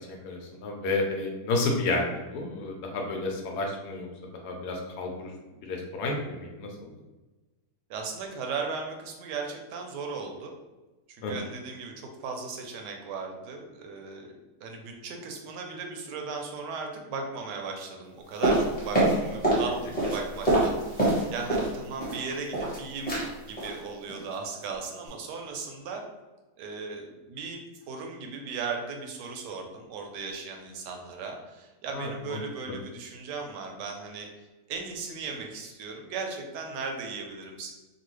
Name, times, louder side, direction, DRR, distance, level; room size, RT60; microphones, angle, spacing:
voice 1, 0.0-4.1 4.4-5.3 5.7-6.9 11.2-11.3 31.9-32.4, left 2 dB, 75° left, 1 dB, 1.1 m, -31 dB
voice 2, 7.9-10.5 11.2-14.3 14.6-26.0 26.6-34.3 34.7-37.7, right 4 dB, 80° right, 3 dB, 1.2 m, -37 dB
footsteps shoes walk hard floor stone patio nice, 18.4-19.7 19.9-21.7 22.0-22.8 23.1-23.3 23.6-23.8 24.1-24.4 24.6-24.7, right 1 dB, 5° left, 0.8 m, -25 dB
3.0 x 2.3 x 3.1 m, 1.1 s
omnidirectional pair, 1.8 m